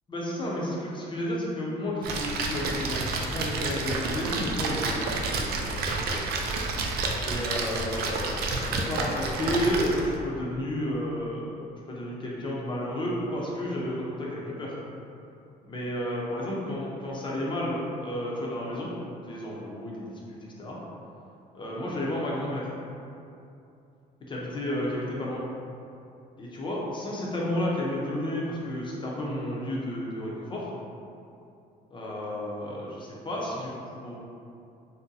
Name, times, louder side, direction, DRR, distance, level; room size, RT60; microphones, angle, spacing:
voice 1, 0.1-6.3 7.2-11.5 11.9-14.7 15.7-18.9 19.3-20.8 21.5-22.7 24.3-25.4 26.4-30.7 31.9-34.2, left 1 dB, 30° left, -4 dB, 0.7 m, -32 dB
Splash splatter, 2.0-10.2, right 3 dB, 65° right, 0.4 m, -30 dB
2.7 x 2.1 x 3.8 m, 2.6 s
cardioid pair, 110°, 17 cm